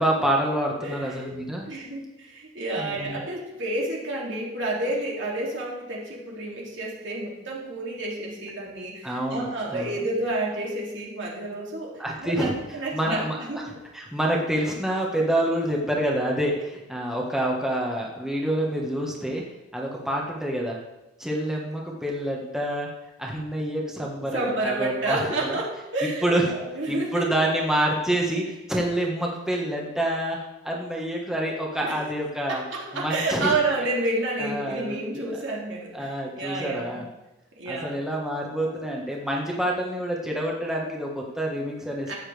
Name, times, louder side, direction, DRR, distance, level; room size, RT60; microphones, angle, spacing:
voice 1, 0.0-1.7 2.8-3.2 9.0-10.0 12.0-12.5 12.9-13.6 13.9-19.4 19.7-20.8 21.2-22.9 23.2-25.6 26.2-26.5 26.9-32.6 32.9-33.8 34.4-35.2 35.9-37.1 37.7-42.1, right 1 dB, 5° right, -2 dB, 1.4 m, -27 dB
voice 2, 0.8-1.3 1.6-13.6 24.2-27.3 31.8-32.0 32.5-37.0 37.6-38.0 42.1-42.2, right 2 dB, 65° right, -3 dB, 2.9 m, -30 dB
14.0 x 8.6 x 3.5 m, 0.96 s
head